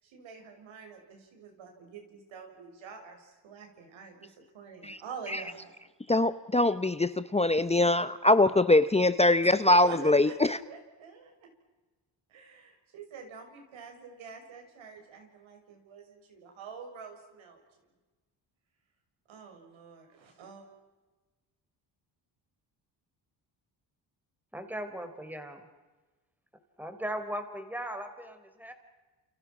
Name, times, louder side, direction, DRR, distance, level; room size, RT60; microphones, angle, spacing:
voice 1, 0.0-5.7 9.4-10.3 10.6-11.5 12.3-17.6 19.3-20.6, right 5 dB, 85° right, 3 dB, 6.7 m, -46 dB
voice 2, 6.1-10.6, left 2 dB, 15° left, 13 dB, 0.8 m, -23 dB
voice 3, 24.5-25.7 26.8-28.7, right 1 dB, 5° right, 7 dB, 3.9 m, -38 dB
29.5 x 29.0 x 6.1 m, 1.2 s
cardioid pair, 105°, 46 cm